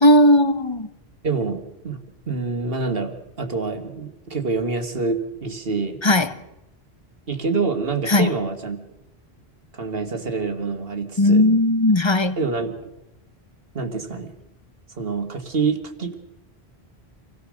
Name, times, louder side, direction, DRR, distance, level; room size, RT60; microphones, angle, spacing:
voice 1, 0.0-0.9 6.0-6.3 8.1-8.3 11.2-12.4, left 1 dB, 25° left, 1.0 m, -16 dB
voice 2, 1.2-2.0 2.3-6.0 7.3-8.8 9.7-11.5 12.4-12.9 13.7-14.3 15.0-16.1, right 4 dB, 65° right, 2.1 m, -26 dB
27.0 x 17.5 x 6.4 m
omnidirectional pair, 1.1 m